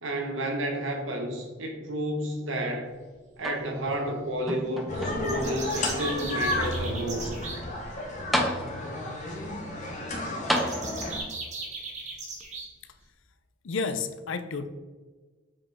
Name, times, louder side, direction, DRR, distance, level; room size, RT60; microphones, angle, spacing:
voice 1, 0.0-2.9 3.4-7.3, right 1 dB, 75° right, 3 dB, 1.3 m, -31 dB
sound 1, 3.4-4.1 4.5-5.5 6.2-6.3 7.9-8.0 8.3-9.1 10.5-11.3 12.4-12.5, equal, ahead, 0.7 m, -31 dB
sound 2, 4.9-11.2, left 1 dB, 40° left, 1.1 m, -32 dB
sound 3, 5.2-7.6 10.5-12.7, right 3 dB, 35° right, 1.4 m, -38 dB
voice 2, 13.6-14.7, left 4 dB, 80° left, 11 dB, 0.6 m, -31 dB
7.2 x 5.1 x 3.5 m, 1.4 s
head